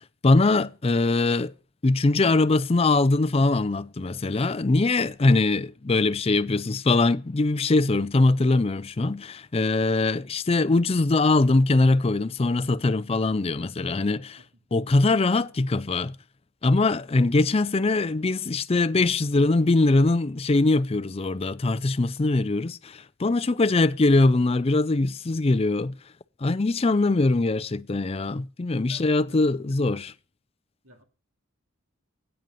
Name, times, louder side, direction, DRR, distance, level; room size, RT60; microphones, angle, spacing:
voice 1, 0.2-1.5 1.8-14.4 14.7-16.2 16.6-25.9 26.4-30.1, left 2 dB, 30° left, 0.5 m, -22 dB
voice 2, 28.8-29.4 29.7-30.1 30.8-31.0, right 1 dB, 85° right, 2.4 m, -52 dB
9.2 x 7.8 x 5.5 m
head